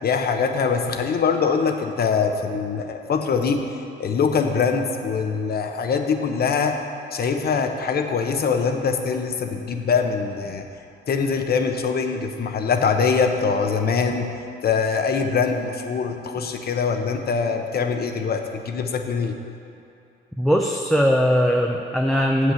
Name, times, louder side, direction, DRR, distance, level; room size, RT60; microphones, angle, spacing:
voice 1, 0.0-3.7 4.0-6.8 7.1-10.6 11.1-19.4, left 5 dB, 50° left, 5 dB, 0.9 m, -23 dB
voice 2, 20.4-22.5, equal, ahead, 0 dB, 0.6 m, -20 dB
7.4 x 6.1 x 7.6 m, 2.7 s
cardioid pair, 90°, 20 cm